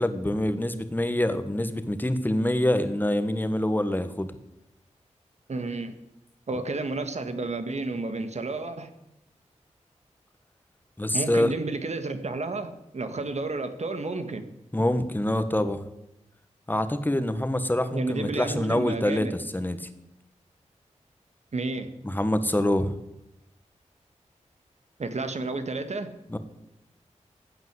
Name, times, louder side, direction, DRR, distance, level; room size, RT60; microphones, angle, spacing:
voice 1, 0.0-4.3 11.0-11.5 14.7-15.9 16.7-19.9 22.0-22.9 26.3-26.4, left 1 dB, 15° left, 10 dB, 1.5 m, -25 dB
voice 2, 5.5-5.9 6.5-8.9 11.1-14.4 17.9-19.3 21.5-21.9 25.0-26.1, right 3 dB, 65° right, 8 dB, 1.8 m, -31 dB
15.0 x 8.9 x 8.2 m, 0.88 s
wide cardioid pair, 65°, 13 cm